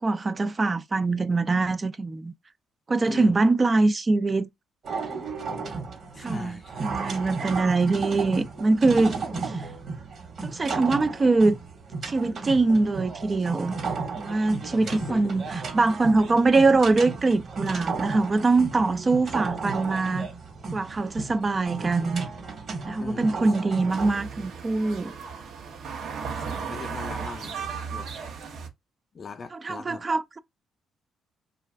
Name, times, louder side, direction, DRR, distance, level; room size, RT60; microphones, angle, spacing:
voice 1, 0.0-2.3 2.9-4.5 6.2-9.2 9.4-9.7 10.4-11.6 12.0-13.8 14.2-15.4 15.7-20.3 20.7-22.3 22.9-25.1 29.5-30.4, right 3 dB, 30° right, 0.4 m, -23 dB
voice 2, 3.1-3.4 6.0-6.8 14.8-15.5 23.0-23.3 23.7-23.8 26.4-27.6 27.9-28.1 29.1-30.1, left 5 dB, 45° left, 0.5 m, -40 dB
sound 1, 4.8-24.1, right 4 dB, 55° right, 1.2 m, -34 dB
sound 2, 23.9-28.7, right 6 dB, 70° right, 0.8 m, -35 dB
2.4 x 2.3 x 3.2 m
cardioid pair, 90°, 0 cm